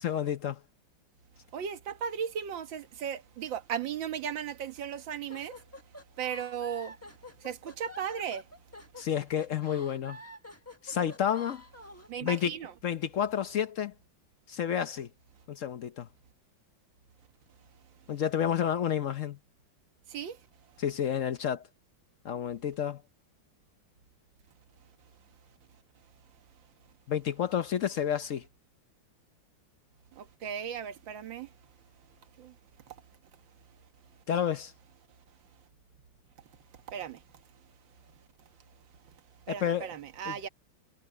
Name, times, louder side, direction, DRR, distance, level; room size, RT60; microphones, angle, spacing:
voice 1, 0.0-0.6 9.0-10.2 10.8-11.6 12.2-12.6 12.8-13.9 14.5-15.1 15.5-16.1 18.1-19.4 20.8-21.6 22.2-23.0 27.1-28.4 34.3-34.7 39.5-39.9 40.3-40.4, left 9 dB, 60° left, 0.8 m, -30 dB
voice 2, 1.5-5.6 6.2-7.0 7.4-8.4 12.1-12.7 20.1-20.4 30.2-31.5 32.4-32.5 36.9-37.2 39.5-40.5, right 8 dB, 75° right, 2.1 m, -36 dB
sound 1, 5.3-12.1, left 1 dB, 10° left, 1.0 m, -48 dB
omnidirectional pair, 2.1 m